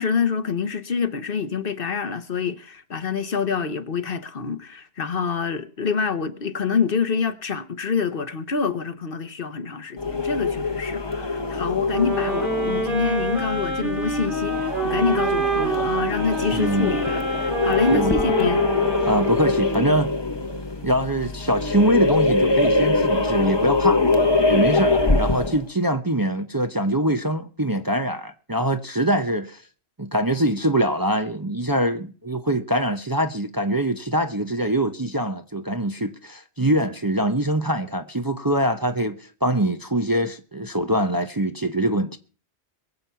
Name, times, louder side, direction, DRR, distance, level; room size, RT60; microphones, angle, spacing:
voice 1, 0.0-18.7, left 5 dB, 55° left, 1.2 m, -26 dB
sound 1, 10.0-25.7, left 3 dB, 25° left, 1.0 m, -23 dB
sound 2, 11.9-20.1, right 2 dB, 50° right, 3.8 m, -27 dB
voice 2, 16.5-16.9 17.9-18.1 19.1-20.1 20.8-24.0 24.5-29.6 30.0-42.2, right 1 dB, 20° right, 0.8 m, -23 dB
22.5 x 7.7 x 5.7 m
omnidirectional pair, 1.1 m